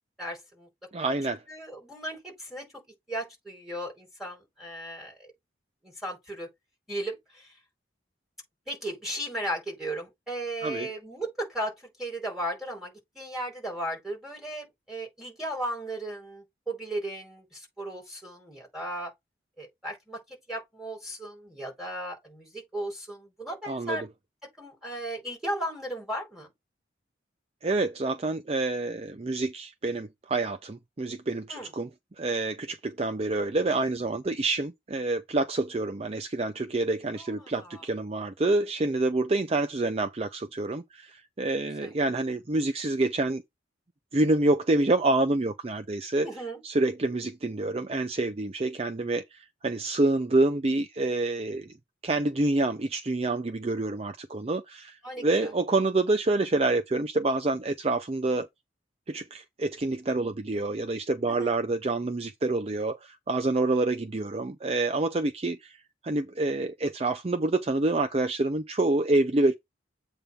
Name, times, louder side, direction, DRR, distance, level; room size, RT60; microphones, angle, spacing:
voice 1, 0.2-0.7 1.0-1.1 1.5-2.8 3.1-5.3 5.8-6.5 6.9-7.5 8.7-19.1 19.6-24.0 24.4-26.5 31.5-31.7 37.1-37.8 41.8-41.9 46.2-46.6 55.0-55.5 61.2-61.5, right 1 dB, ahead, 4.7 m, -36 dB
voice 2, 0.9-1.4 10.6-10.9 23.6-24.0 27.6-31.9 32.2-43.4 44.1-46.3 46.6-51.7 52.0-58.5 59.1-69.5, right 2 dB, 30° right, 0.5 m, -27 dB
8.0 x 3.5 x 5.6 m
head